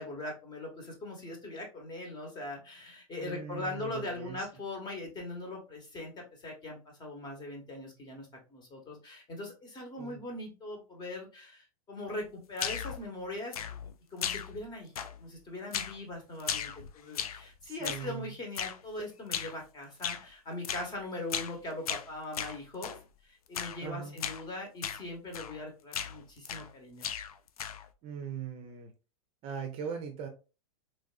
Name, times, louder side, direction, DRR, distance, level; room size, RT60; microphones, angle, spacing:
voice 1, 0.0-13.6 14.1-14.9 15.2-23.0 23.2-27.1, left 2 dB, 25° left, 1.1 m, -41 dB
voice 2, 3.2-4.5 10.0-10.2 17.7-18.3 23.8-24.2 28.0-28.9 29.4-30.3, right 7 dB, 35° right, 0.6 m, -40 dB
sound 1, 12.6-13.0 13.5-13.9 14.2-14.7 15.0-15.3 15.7-16.0 16.4-17.5 17.8-18.1 18.6-18.8 19.3-19.6 20.0-20.3 20.6-20.9 21.3-21.6 21.9-23.0 23.5-23.8 24.2-24.4 24.8-25.0 25.3-25.6 25.9-26.7 27.0-27.9, left 8 dB, 85° left, 0.4 m, -36 dB
3.2 x 2.5 x 2.3 m
hypercardioid pair, 115°, 18 cm